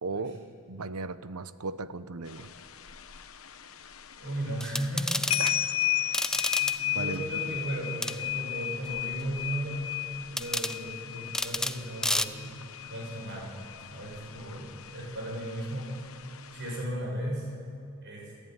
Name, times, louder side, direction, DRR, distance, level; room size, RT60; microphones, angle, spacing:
voice 1, 0.0-2.5 5.4-5.8 6.9-7.6, right 3 dB, 90° right, 14 dB, 0.9 m, -37 dB
sound 1, 2.3-16.8, left 14 dB, 65° left, 1.1 m, -35 dB
voice 2, 4.2-5.3 6.6-9.9 10.3-12.6 12.9-13.5 13.9-15.9 16.5-17.5 18.0-18.3, right 1 dB, 55° right, -2 dB, 6.9 m, -35 dB
sound 2, 4.6-5.5 6.1-6.8 8.0-8.2 10.4-10.8 11.3-11.8 12.0-12.2, left 1 dB, 5° left, 0.5 m, -30 dB
27.5 x 14.5 x 9.3 m, 2.5 s
head